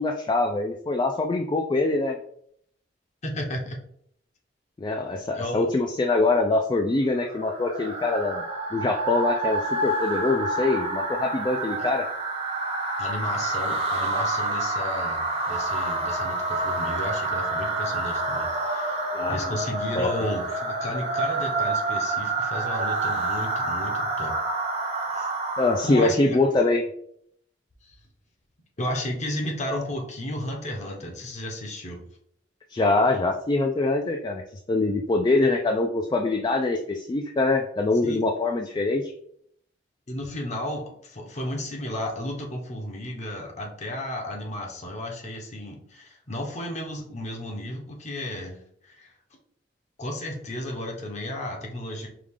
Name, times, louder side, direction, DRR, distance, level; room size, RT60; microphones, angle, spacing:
voice 1, 0.0-2.2 4.8-8.4 8.7-12.1 19.1-19.5 20.0-20.1 25.6-26.9 32.7-34.4 34.7-39.1, left 2 dB, 25° left, 3 dB, 0.3 m, -24 dB
voice 2, 3.2-3.8 5.3-5.7 11.8-11.9 13.0-24.3 25.1-25.3 25.8-26.4 27.8-27.9 28.8-32.1 38.0-38.2 40.1-48.6 48.8-49.1 50.0-52.1, left 1 dB, 40° left, 1 dB, 0.9 m, -33 dB
sound 1, 7.1-26.1, right 2 dB, 35° right, 0.8 m, -28 dB
4.8 x 2.4 x 3.6 m, 0.67 s
head